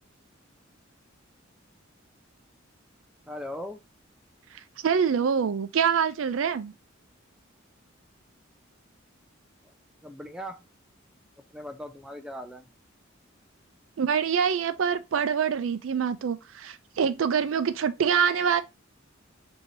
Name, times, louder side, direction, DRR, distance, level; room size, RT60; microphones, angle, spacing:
voice 1, 3.3-3.8 10.0-10.6 11.5-12.6, equal, 5° right, 0.4 m, -38 dB
voice 2, 4.8-6.7 14.0-18.6, right 7 dB, 75° right, 0.4 m, -25 dB
4.4 x 2.7 x 2.7 m
head